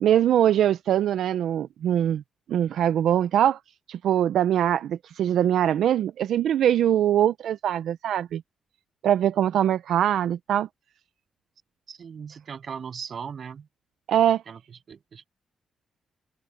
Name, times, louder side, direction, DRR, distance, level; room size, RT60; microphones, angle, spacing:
voice 1, 0.0-2.2 2.5-3.6 3.9-8.4 9.0-10.7 14.1-14.4, right 10 dB, 75° right, 0.5 m, -22 dB
voice 2, 11.9-13.7 14.5-14.6 14.9-15.3, right 6 dB, 40° right, 8.0 m, -38 dB
open air
cardioid pair, 155°, 0 cm